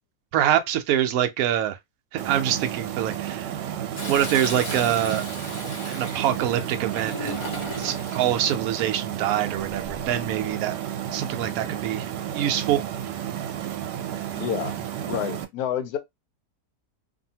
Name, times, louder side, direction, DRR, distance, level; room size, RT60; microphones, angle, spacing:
voice 1, 0.3-1.8 2.1-3.5 4.1-5.3 5.9-10.7 11.1-12.8, right 11 dB, 70° right, 0.9 m, -25 dB
sound 1, 2.2-15.5, right 10 dB, 90° right, 1.2 m, -32 dB
Toilet flush, 4.0-8.3 9.6-10.1, equal, 35° left, 0.5 m, -36 dB
voice 2, 14.4-16.0, left 10 dB, 75° left, 1.1 m, -29 dB
2.7 x 2.6 x 2.7 m
omnidirectional pair, 1.8 m